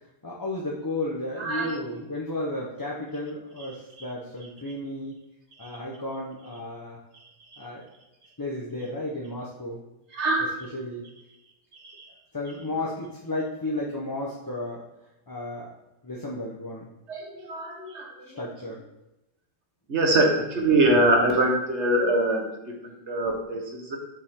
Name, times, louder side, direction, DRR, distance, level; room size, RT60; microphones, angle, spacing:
voice 1, 0.2-5.1 5.6-7.0 7.6-7.9 8.4-9.8 10.7-11.0 12.3-14.8 15.3-15.7 16.0-16.9 18.4-18.8, left 1 dB, 20° left, -4 dB, 0.9 m, -33 dB
voice 2, 1.4-1.7 10.1-10.5 11.8-12.1 17.1-18.3 19.9-22.4 22.8-24.0, right 1 dB, 60° right, 1 dB, 1.7 m, -23 dB
7.1 x 6.9 x 3.7 m, 0.93 s
omnidirectional pair, 1.3 m